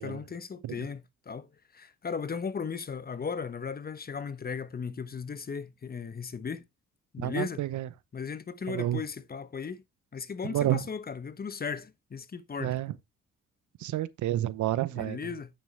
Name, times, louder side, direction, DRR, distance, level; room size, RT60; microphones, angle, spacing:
voice 1, 0.0-6.7 7.1-7.6 8.1-9.8 10.1-12.8 15.0-15.5, left 6 dB, 30° left, 0.9 m, -36 dB
voice 2, 7.2-7.9 8.7-9.0 10.4-10.8 12.6-12.9 13.8-15.3, right 14 dB, 75° right, 0.8 m, -30 dB
9.1 x 6.9 x 3.3 m
cardioid pair, 90°, 30 cm